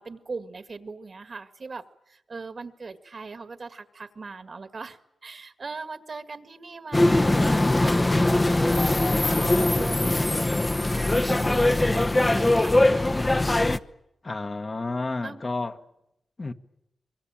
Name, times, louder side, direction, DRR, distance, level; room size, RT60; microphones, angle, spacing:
voice 1, 0.0-7.9 8.6-13.8 15.2-15.4, right 4 dB, 50° right, 1.8 m, -40 dB
Snack Bar Ambience in São Paulo Brazil, 6.9-13.8, left 2 dB, 25° left, 0.9 m, -21 dB
voice 2, 14.2-15.8 16.4-16.5, left 3 dB, 40° left, 1.4 m, -30 dB
24.0 x 23.0 x 8.9 m
cardioid pair, 75°, 0 cm